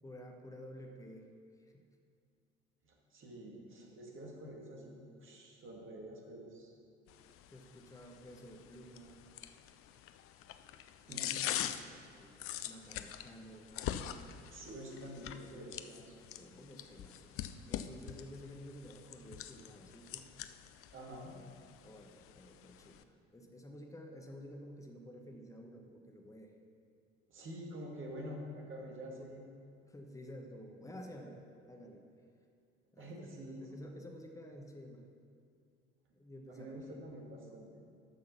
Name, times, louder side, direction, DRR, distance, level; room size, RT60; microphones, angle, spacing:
voice 1, 0.0-1.3 1.7-1.8 4.1-4.2 7.5-9.3 11.0-12.3 12.6-13.7 16.1-20.3 21.8-26.5 29.9-31.4 31.7-32.0 32.9-35.1 36.1-37.0, equal, 10° left, 2 dB, 1.1 m, -52 dB
voice 2, 2.8-6.7 11.0-11.4 14.5-16.1 20.9-21.3 27.3-29.5 33.0-33.8 36.5-37.8, equal, 35° right, -1 dB, 2.2 m, -47 dB
sound 1, 7.1-23.0, left 11 dB, 40° left, 0.5 m, -44 dB
10.0 x 6.5 x 5.6 m, 2.3 s
figure-of-eight pair, 60°, 34 cm